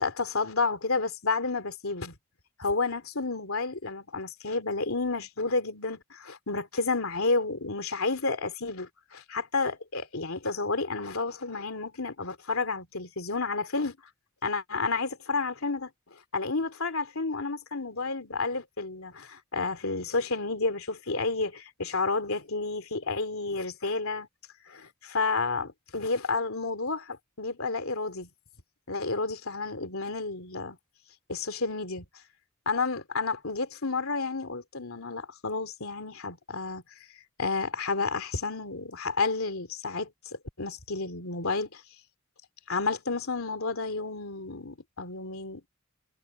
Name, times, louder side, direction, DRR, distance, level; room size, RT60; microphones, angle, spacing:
voice 1, 0.0-2.1 2.6-14.0 14.4-15.9 16.3-24.3 24.7-28.3 28.9-30.8 31.3-32.0 32.7-36.8 37.4-41.8 42.7-45.6, left 3 dB, 80° left, 3.0 m, -31 dB
head